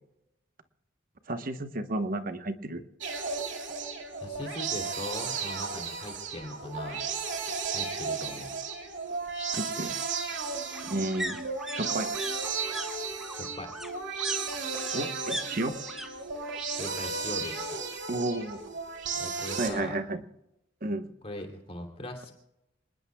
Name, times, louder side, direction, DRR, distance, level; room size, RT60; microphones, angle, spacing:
voice 1, 1.3-2.8 9.5-9.9 10.9-11.4 11.7-12.1 14.9-15.7 18.1-18.6 19.6-20.2 20.8-21.1, right 2 dB, 45° right, 8 dB, 1.1 m, -32 dB
sound 1, 3.0-19.7, right 4 dB, 65° right, 2.9 m, -34 dB
voice 2, 4.2-7.1 7.7-8.7 13.3-13.7 16.8-17.8 19.1-20.0 21.2-22.3, left 1 dB, 30° left, 3 dB, 2.9 m, -40 dB
sound 2, 5.2-5.3 5.7-5.8 6.0-7.0 8.3-16.1 16.3-16.9 17.2-18.2 18.5-18.6, equal, ahead, 1.5 m, -41 dB
27.5 x 20.0 x 2.3 m, 0.89 s
head